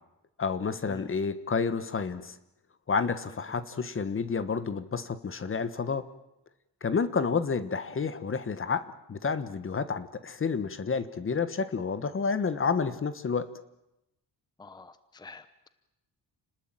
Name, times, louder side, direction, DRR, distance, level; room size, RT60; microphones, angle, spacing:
voice 1, 0.4-2.4 2.9-6.0 6.8-13.5, left 5 dB, 30° left, 13 dB, 1.3 m, -30 dB
voice 2, 14.6-15.7, left 3 dB, 10° left, 13 dB, 0.9 m, -48 dB
30.0 x 19.5 x 9.1 m, 0.92 s
wide cardioid pair, 160°, 41 cm